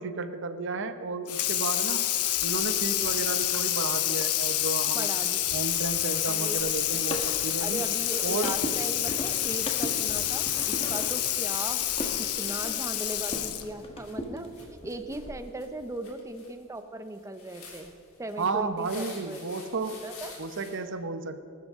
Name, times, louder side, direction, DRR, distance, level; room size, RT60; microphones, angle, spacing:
voice 1, 0.0-2.1 2.4-5.1 5.5-7.8 8.2-8.5 18.4-20.0 20.4-21.4, right 3 dB, 55° right, 10 dB, 0.8 m, -32 dB
Water tap faucet / Sink (filling or washing), 1.3-13.8, left 12 dB, 85° left, 0.8 m, -28 dB
sound 1, 3.1-20.8, left 4 dB, 65° left, 3.6 m, -50 dB
voice 2, 4.9-5.5 6.3-6.9 7.6-11.8 12.4-17.9 18.2-20.3, right 1 dB, 15° right, 9 dB, 0.7 m, -38 dB
sound 2, 6.5-13.5 13.8-15.3, equal, 25° left, 1.5 m, -38 dB
20.0 x 12.5 x 3.7 m, 2.6 s
head